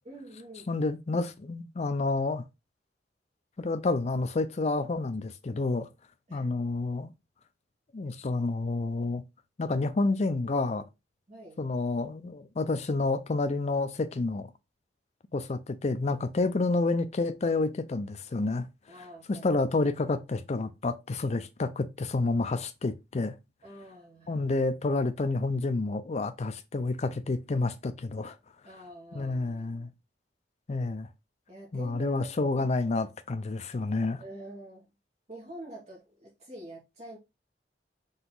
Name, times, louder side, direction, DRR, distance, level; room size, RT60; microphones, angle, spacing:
voice 1, 0.0-0.7 6.3-6.5 11.3-11.6 18.9-19.5 23.6-24.4 28.6-29.9 31.5-32.7 34.2-34.9 35.3-37.2, right 1 dB, 40° right, 1.3 m, -46 dB
voice 2, 0.7-2.4 3.6-5.9 6.3-7.1 7.9-9.2 9.6-10.8 11.6-14.5 15.3-18.7 19.3-23.3 24.3-28.4 29.1-29.9 30.7-31.1 31.7-34.2, left 3 dB, 40° left, 0.5 m, -29 dB
4.0 x 2.8 x 3.9 m
head